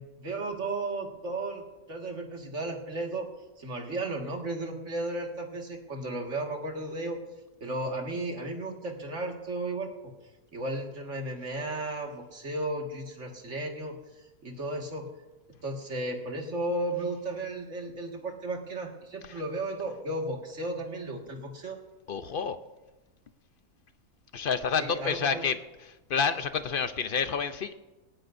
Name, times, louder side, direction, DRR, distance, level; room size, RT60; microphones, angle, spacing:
voice 1, 0.0-1.6 1.9-3.3 3.6-7.2 7.6-10.1 10.5-14.0 14.4-15.1 15.6-21.8 24.8-25.4, right 2 dB, 50° right, 1 dB, 2.2 m, -34 dB
voice 2, 22.1-22.6 24.3-25.6 25.9-27.7, left 6 dB, 55° left, 10 dB, 0.6 m, -29 dB
19.0 x 18.0 x 2.6 m, 1.1 s
omnidirectional pair, 1.7 m